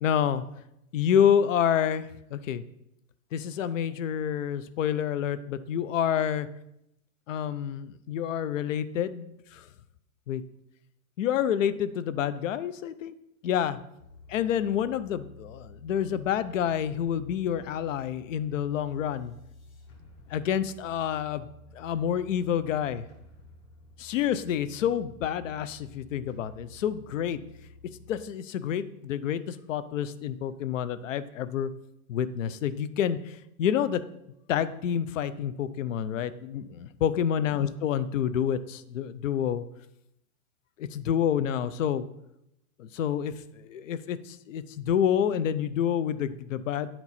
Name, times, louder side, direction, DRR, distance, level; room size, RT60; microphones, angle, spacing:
voice 1, 0.0-0.4 0.9-2.6 3.3-6.5 7.3-9.7 10.3-10.4 11.2-13.1 13.4-13.8 14.3-19.3 20.3-21.5 21.7-23.0 24.0-27.4 28.1-31.7 32.1-34.0 34.5-39.6 40.8-42.1 42.8-46.9, left 9 dB, 65° left, 14 dB, 0.6 m, -28 dB
sound 1, 14.0-28.2, left 2 dB, 25° left, 0.8 m, -52 dB
9.7 x 4.5 x 4.1 m, 0.83 s
hypercardioid pair, 160°, 43 cm